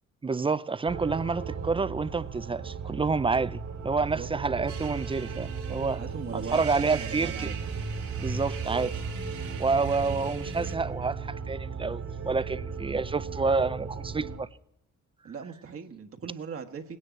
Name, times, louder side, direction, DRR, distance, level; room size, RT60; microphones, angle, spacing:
voice 1, 0.2-6.0 6.5-7.5 8.2-8.9 9.6-14.5, right 4 dB, 20° right, 0.5 m, -28 dB
sound 1, 0.9-14.4, right 5 dB, 65° right, 2.3 m, -37 dB
sound 2, 4.7-10.7, right 5 dB, 85° right, 2.7 m, -38 dB
voice 2, 6.0-7.6 15.2-17.0, right 6 dB, 50° right, 1.5 m, -39 dB
18.0 x 9.8 x 7.6 m
cardioid pair, 90°, 30 cm